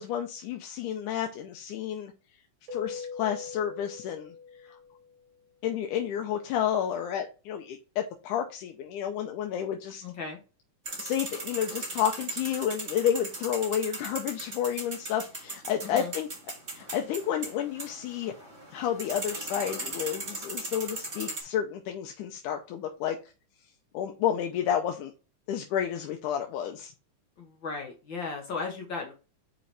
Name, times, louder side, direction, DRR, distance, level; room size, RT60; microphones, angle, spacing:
voice 1, 0.0-2.1 2.7-4.3 4.6-4.8 5.6-10.0 11.0-16.3 16.7-18.3 18.7-23.2 23.9-25.1 25.5-26.9, left 9 dB, 80° left, 3 dB, 2.1 m, -30 dB
Keyboard (musical), 2.7-5.2, left 5 dB, 70° right, 2.8 m, -41 dB
voice 2, 10.0-10.4 15.8-16.1 27.4-29.1, left 4 dB, 60° left, 1 dB, 1.3 m, -36 dB
sound 1, 10.9-21.4, right 2 dB, 25° right, 1.6 m, -38 dB
5.9 x 5.1 x 3.4 m, 0.32 s
omnidirectional pair, 3.7 m